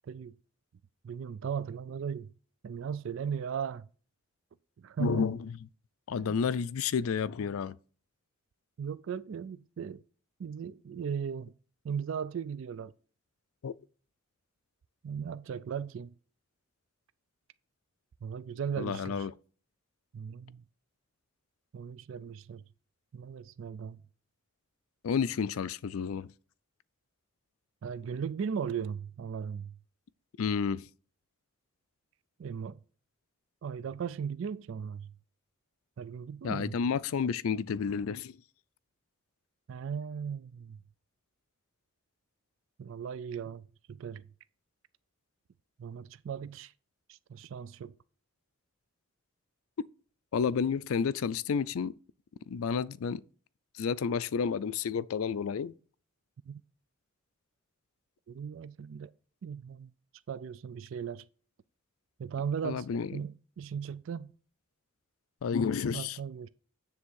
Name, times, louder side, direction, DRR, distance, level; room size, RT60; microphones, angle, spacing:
voice 1, 0.0-0.3 1.0-2.3 2.6-3.9 4.8-5.3 6.2-6.4 8.8-10.0 10.4-11.5 11.8-12.9 15.0-16.1 18.2-19.3 20.1-20.6 21.7-22.6 23.1-24.0 27.8-29.8 32.4-32.8 33.6-35.1 36.0-36.8 39.7-40.8 42.8-44.2 45.8-46.7 47.1-47.9 56.5-56.6 58.3-59.1 59.4-59.9 60.3-61.2 62.2-62.9 63.1-64.3 65.9-66.5, right 7 dB, 65° right, 0.3 m, -37 dB
voice 2, 5.0-5.5 6.1-7.8 13.6-13.7 18.8-19.3 25.0-26.3 30.4-30.9 36.4-38.4 50.3-51.9 52.5-53.2 53.7-55.7 62.6-63.2 65.4-66.2, left 6 dB, 85° left, 0.4 m, -30 dB
9.7 x 3.5 x 6.3 m
head